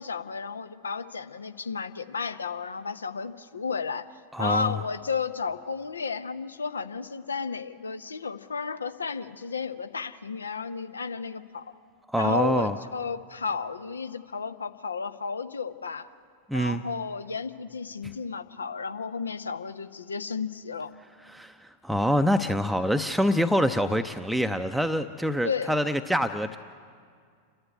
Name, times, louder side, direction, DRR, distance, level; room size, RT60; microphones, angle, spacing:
voice 1, 0.0-4.1 4.4-11.6 12.2-16.1 16.5-20.9 25.4-25.7, left 5 dB, 75° left, 11 dB, 0.8 m, -33 dB
voice 2, 4.3-4.8 12.1-12.8 16.5-16.8 21.2-26.6, equal, ahead, 7 dB, 0.6 m, -25 dB
28.5 x 11.0 x 9.3 m, 2.2 s
figure-of-eight pair, 90°, 0 cm